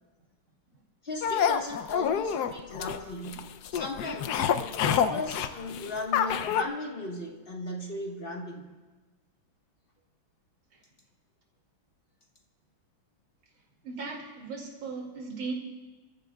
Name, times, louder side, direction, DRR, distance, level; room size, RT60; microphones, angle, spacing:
voice 1, 1.0-8.7, left 2 dB, 30° left, 2 dB, 1.3 m, -37 dB
sound 1, 1.2-6.6, left 8 dB, 70° left, 1.0 m, -28 dB
voice 2, 13.8-15.5, right 4 dB, 80° right, -1 dB, 3.1 m, -37 dB
28.0 x 14.0 x 2.3 m, 1.2 s
omnidirectional pair, 2.2 m